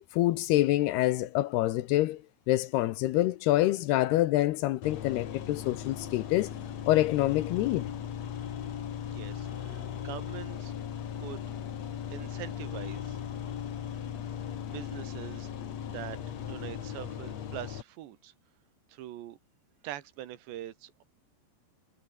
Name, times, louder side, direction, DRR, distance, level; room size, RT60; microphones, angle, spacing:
voice 1, 0.1-2.2 2.5-6.5 6.9-7.9, left 16 dB, 75° left, 2.6 m, -26 dB
sound 1, 4.8-17.8, left 9 dB, 50° left, 2.3 m, -38 dB
voice 2, 9.1-10.7 11.2-11.4 12.1-13.2 14.6-15.5 15.8-16.2 16.5-18.3 18.9-19.4 19.8-21.0, right 13 dB, 80° right, 3.6 m, -43 dB
omnidirectional pair, 5.1 m